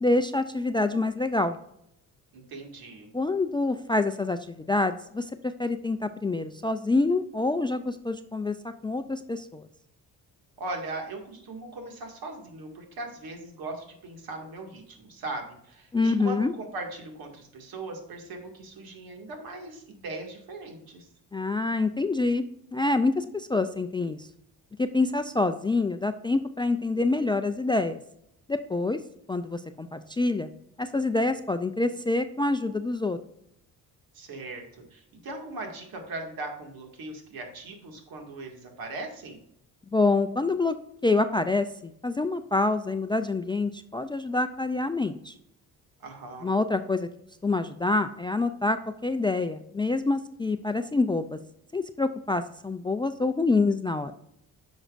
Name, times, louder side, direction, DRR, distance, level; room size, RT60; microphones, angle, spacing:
voice 1, 0.0-1.6 3.1-8.6 8.8-9.7 15.9-16.5 21.3-22.4 22.7-24.3 24.8-28.0 28.5-29.0 29.3-30.5 30.8-33.2 39.9-40.8 41.0-45.3 46.4-47.1 47.4-48.8 49.0-51.4 51.7-54.1, left 3 dB, 15° left, 10 dB, 0.3 m, -26 dB
voice 2, 2.3-3.1 10.6-21.1 34.1-39.4 46.0-46.5, right 2 dB, 70° right, 3 dB, 2.1 m, -39 dB
9.8 x 6.2 x 2.5 m, 0.77 s
cardioid pair, 95°, 37 cm